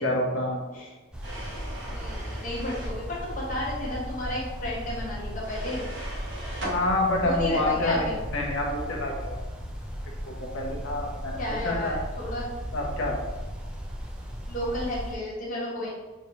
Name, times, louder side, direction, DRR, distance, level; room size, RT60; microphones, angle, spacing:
voice 1, 0.0-0.6 6.7-8.0 8.3-9.3 10.3-11.9 12.7-13.2, left 1 dB, 75° left, -1 dB, 0.9 m, -27 dB
sound 1, 1.1-15.1, equal, 5° right, 0.5 m, -36 dB
sound 2, 1.2-3.0 5.4-6.8, right 1 dB, 65° right, 1.3 m, -38 dB
voice 2, 1.9-5.8 7.2-8.2 11.4-12.5 14.5-15.9, left 1 dB, 40° left, -6 dB, 1.1 m, -32 dB
4.6 x 3.2 x 2.8 m, 1.2 s
head